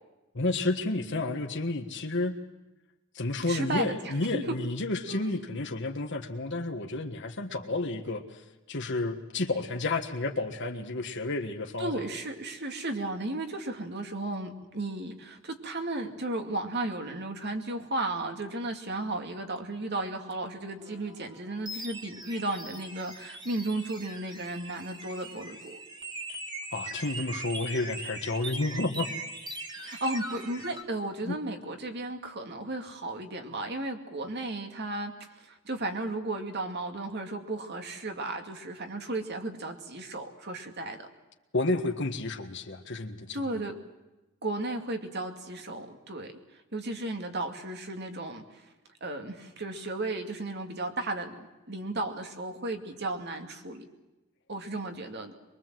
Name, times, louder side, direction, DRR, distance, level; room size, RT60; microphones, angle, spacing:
voice 1, 0.3-2.4 3.1-8.4 8.7-11.9 26.7-29.1 31.2-31.4 41.5-43.6, left 2 dB, 60° left, 5 dB, 1.6 m, -31 dB
voice 2, 3.5-4.5 5.1-5.5 11.8-25.8 29.8-41.1 43.3-43.8 44.4-48.7 49.0-53.9 54.5-55.3, right 2 dB, 55° right, 5 dB, 2.5 m, -34 dB
sound 1, 20.8-30.8, right 2 dB, 20° right, 2.4 m, -41 dB
23.5 x 23.0 x 7.7 m, 1.1 s
head